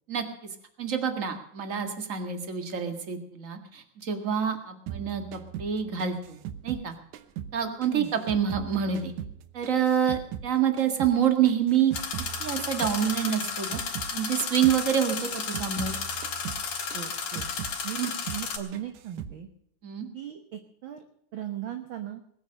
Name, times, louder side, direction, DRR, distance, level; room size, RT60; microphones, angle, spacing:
voice 1, 0.1-0.5 0.8-6.9 7.5-9.1 9.5-11.9 12.4-16.0 18.0-18.1 19.8-20.1, right 8 dB, 30° right, 7 dB, 1.8 m, -27 dB
sound 1, 4.9-7.6 7.8-10.5 10.8-14.2 14.4-14.8 15.1-17.8 18.0-18.5 18.7-19.4, right 10 dB, 75° right, 2.3 m, -39 dB
sound 2, 11.9-18.6, left 5 dB, 50° left, 2.8 m, -33 dB
voice 2, 16.9-17.5 17.8-18.0 18.3-19.5 20.1-21.0 21.3-22.2, right 11 dB, 55° right, 7 dB, 1.4 m, -37 dB
21.0 x 8.7 x 6.5 m, 0.68 s
omnidirectional pair, 3.7 m